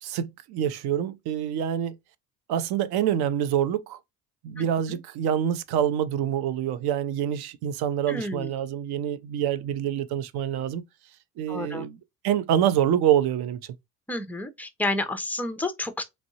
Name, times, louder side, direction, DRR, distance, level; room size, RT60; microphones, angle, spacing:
voice 1, 0.0-2.0 2.5-4.0 4.4-10.8 11.4-12.0 12.2-13.6, right 10 dB, 50° right, 0.5 m, -26 dB
voice 2, 4.6-5.0 8.1-8.5 11.5-11.9 14.1-16.0, left 2 dB, 5° left, 0.4 m, -31 dB
3.1 x 2.6 x 2.7 m
hypercardioid pair, 60°, 49 cm